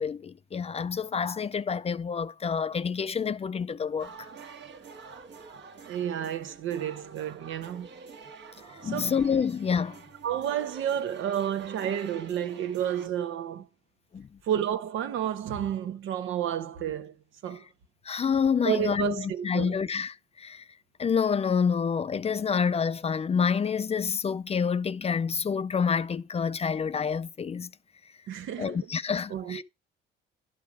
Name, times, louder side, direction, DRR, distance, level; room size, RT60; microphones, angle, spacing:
voice 1, 0.0-4.1 8.8-10.0 14.1-14.3 18.0-20.6 21.0-27.7 28.6-29.6, left 6 dB, 30° left, 0.4 m, -28 dB
sound 1, 4.0-13.1, right 5 dB, 65° right, 1.4 m, -47 dB
voice 2, 5.9-7.9 8.8-9.1 10.2-13.7 14.4-17.1 17.4-17.6 18.6-19.8 28.3-28.9 29.3-29.6, right 9 dB, 80° right, 1.0 m, -31 dB
11.5 x 5.6 x 4.8 m
cardioid pair, 90°, 20 cm